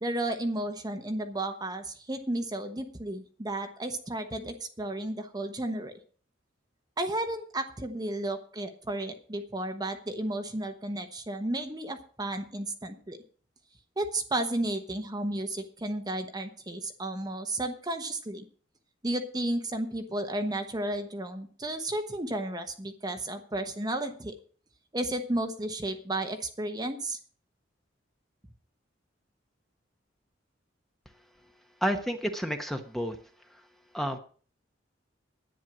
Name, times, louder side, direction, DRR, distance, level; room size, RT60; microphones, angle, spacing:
voice 1, 0.0-5.9 7.0-13.2 14.0-18.4 19.0-24.3 24.9-27.2, right 1 dB, 20° right, 6 dB, 1.1 m, -33 dB
voice 2, 31.8-33.2 33.9-34.2, equal, ahead, 5 dB, 1.1 m, -30 dB
10.5 x 9.2 x 6.2 m, 0.42 s
head